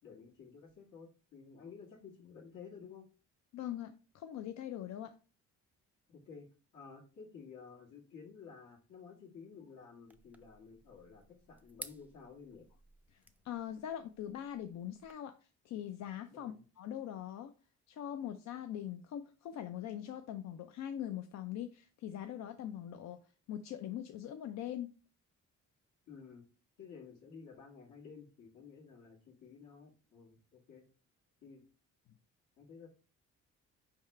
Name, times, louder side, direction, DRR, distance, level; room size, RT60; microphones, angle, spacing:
voice 1, 0.0-3.1 6.1-6.5 6.7-12.7 16.3-16.6 26.1-26.5 26.8-30.8 31.4-31.6 32.6-32.9, left 5 dB, 80° left, 1.8 m, -53 dB
voice 2, 3.5-5.1 13.1-17.5 17.9-23.2 23.5-24.9, left 10 dB, 65° left, 0.4 m, -42 dB
sound 1, 10.1-15.1, right 1 dB, 5° right, 0.4 m, -55 dB
4.6 x 3.6 x 3.2 m
cardioid pair, 90°, 30 cm